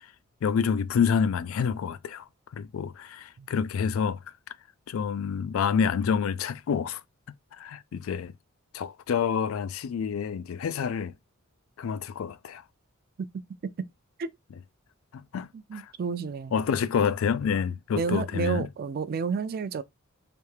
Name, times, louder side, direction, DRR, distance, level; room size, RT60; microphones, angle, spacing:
voice 1, 0.4-2.2 2.5-4.2 4.9-7.0 7.6-8.3 8.7-11.1 11.8-12.6 15.1-15.9 16.5-18.7, left 6 dB, 85° left, 0.3 m, -28 dB
voice 2, 15.5-16.6 18.0-19.8, right 5 dB, 50° right, 0.4 m, -30 dB
3.4 x 2.7 x 3.2 m
head